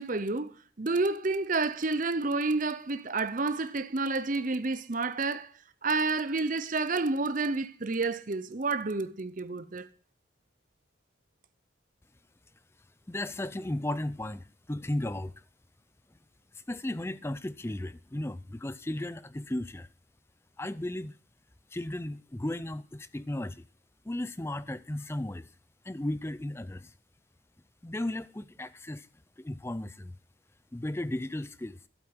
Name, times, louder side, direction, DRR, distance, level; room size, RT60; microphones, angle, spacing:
voice 1, 0.0-5.5 5.8-9.9, right 3 dB, 40° right, 0.7 m, -30 dB
voice 2, 13.1-15.3 16.7-19.9 20.6-21.1 21.7-23.6 24.1-25.5 25.9-26.9 27.8-29.1 29.4-30.1 30.7-31.8, left 1 dB, 15° left, 0.4 m, -35 dB
12.0 x 8.5 x 6.0 m
head